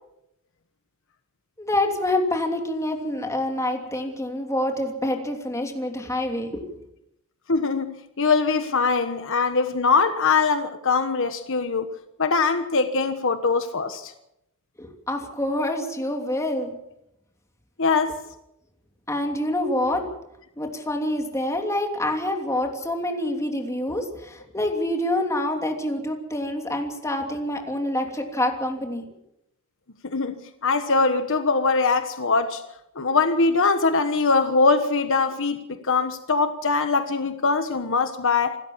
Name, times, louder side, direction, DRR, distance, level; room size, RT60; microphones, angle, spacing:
voice 1, 1.6-6.6 14.8-16.8 19.1-20.0 20.6-29.0, left 1 dB, 15° left, 3.0 m, -26 dB
voice 2, 7.5-11.9 12.2-14.1 17.8-18.2 30.0-32.6 32.9-38.6, left 4 dB, 65° left, 1.3 m, -22 dB
27.0 x 13.0 x 7.4 m
head